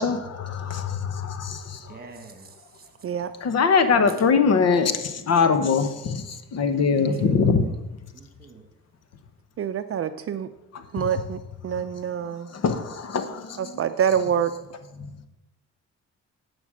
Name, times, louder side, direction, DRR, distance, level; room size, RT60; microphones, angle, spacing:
voice 1, 0.0-2.0 3.4-7.7 10.7-11.1 12.5-13.8 15.0-15.3, left 5 dB, 55° left, 1.1 m, -23 dB
voice 2, 1.9-2.9 6.9-7.6 8.1-8.6, right 4 dB, 30° right, 1.6 m, -41 dB
voice 3, 9.6-10.5 10.9-12.5 13.6-14.5, right 8 dB, 50° right, 0.5 m, -26 dB
11.0 x 5.2 x 6.3 m
cardioid pair, 90°, 30 cm